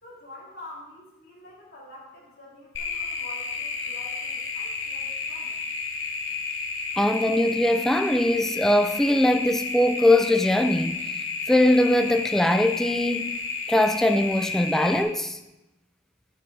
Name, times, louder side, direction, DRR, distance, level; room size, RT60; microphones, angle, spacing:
voice 1, 0.0-5.6, left 2 dB, 50° left, 2.7 m, -46 dB
sound 1, 2.7-15.0, left 4 dB, 80° left, 1.2 m, -31 dB
voice 2, 7.0-11.1 11.5-13.4 13.7-15.4, left 1 dB, ahead, 0.3 m, -21 dB
9.7 x 6.4 x 4.7 m
head